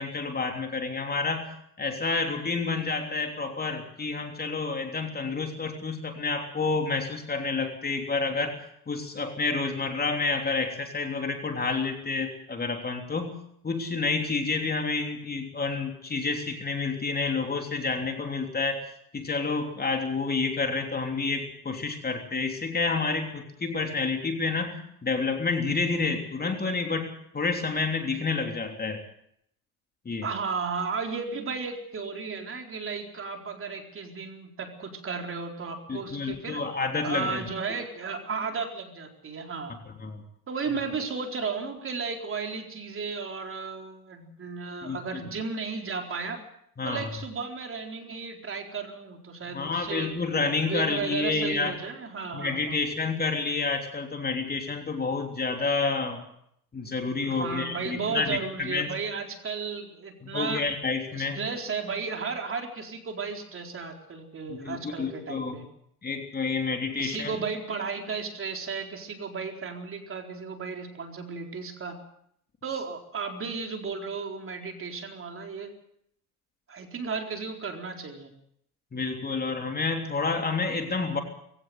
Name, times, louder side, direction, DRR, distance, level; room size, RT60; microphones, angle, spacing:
voice 1, 0.0-1.5 1.8-8.6 8.9-13.4 13.6-18.9 19.1-29.0 30.1-30.3 35.9-37.5 40.0-40.2 44.8-45.0 46.8-47.1 49.5-51.7 52.3-56.3 56.7-58.9 60.2-61.4 64.5-65.6 66.0-67.4 78.9-81.2, left 4 dB, 20° left, 4 dB, 3.4 m, -29 dB
voice 2, 30.2-36.6 37.0-39.7 40.5-46.4 46.8-50.1 50.6-52.8 57.2-60.6 61.1-65.7 67.0-72.0 72.6-75.7 76.7-78.3, right 5 dB, 30° right, 3 dB, 4.3 m, -34 dB
21.0 x 17.0 x 7.9 m, 0.70 s
hypercardioid pair, 90°, 44 cm